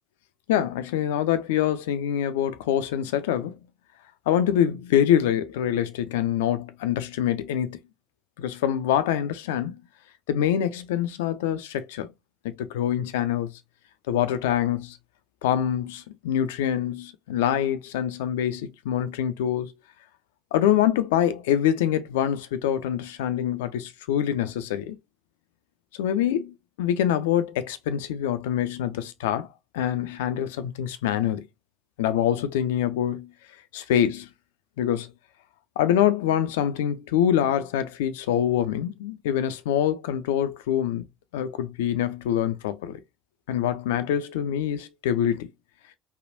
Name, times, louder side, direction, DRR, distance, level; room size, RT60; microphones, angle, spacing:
voice 1, 0.5-3.6 4.3-7.8 8.4-9.8 10.3-12.1 12.4-13.5 14.1-15.0 15.4-19.7 20.5-25.0 26.0-29.5 29.7-31.5 32.0-33.3 33.7-34.3 34.8-35.1 35.8-41.0 41.3-43.0 43.5-45.5, left 10 dB, 75° left, 0.3 m, -25 dB
3.3 x 2.2 x 2.5 m
figure-of-eight pair, 55°, 0 cm